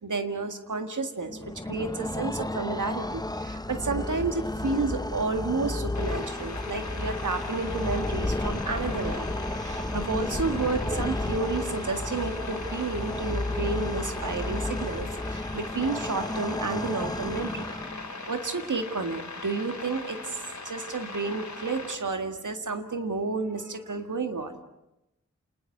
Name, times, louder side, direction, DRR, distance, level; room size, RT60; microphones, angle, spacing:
voice 1, 0.0-9.3 9.6-17.7 18.3-20.4 20.6-24.6, right 4 dB, 85° right, 6 dB, 1.9 m, -31 dB
sound 1, 1.3-18.2, left 1 dB, 15° left, 0.8 m, -32 dB
sound 2, 5.9-21.9, left 3 dB, 65° left, 3.1 m, -40 dB
29.0 x 20.0 x 6.6 m, 0.90 s
wide cardioid pair, 60°, 30 cm